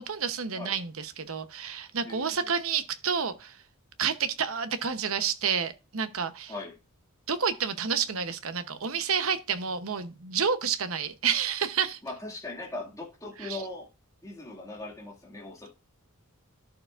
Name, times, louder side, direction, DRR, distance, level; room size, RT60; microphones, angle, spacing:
voice 1, 0.0-3.6 4.0-6.5 7.3-12.0 13.4-13.6, right 6 dB, 70° right, 0.9 m, -29 dB
voice 2, 2.0-2.5 6.5-6.8 12.0-13.9 14.2-15.7, left 2 dB, 15° left, 2.2 m, -39 dB
11.5 x 6.7 x 2.5 m
head